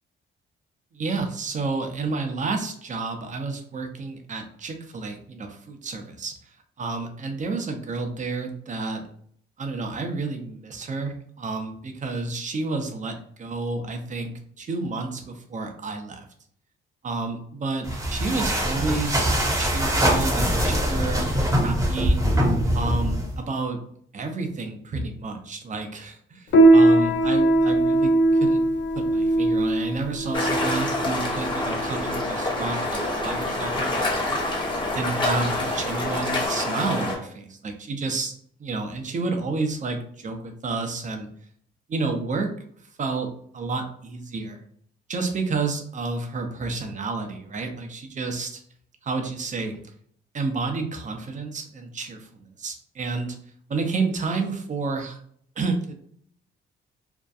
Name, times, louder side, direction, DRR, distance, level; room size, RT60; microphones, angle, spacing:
voice 1, 0.9-6.3 6.8-9.1 9.6-14.3 14.6-16.3 17.0-22.5 22.7-23.8 24.1-28.6 28.9-34.4 34.9-38.3 38.6-41.3 41.9-42.5 43.0-44.6 45.1-48.6 49.0-49.8 50.3-53.4 53.7-55.2 55.6-55.9, right 3 dB, 35° right, 5 dB, 0.5 m, -30 dB
sound 1, 17.8-23.4, equal, 15° right, 0.9 m, -23 dB
Piano, 26.5-36.4, right 2 dB, 60° left, 0.5 m, -21 dB
sound 2, 30.3-37.2, left 2 dB, 20° left, 0.9 m, -27 dB
2.6 x 2.2 x 2.3 m, 0.62 s
cardioid pair, 85°, 21 cm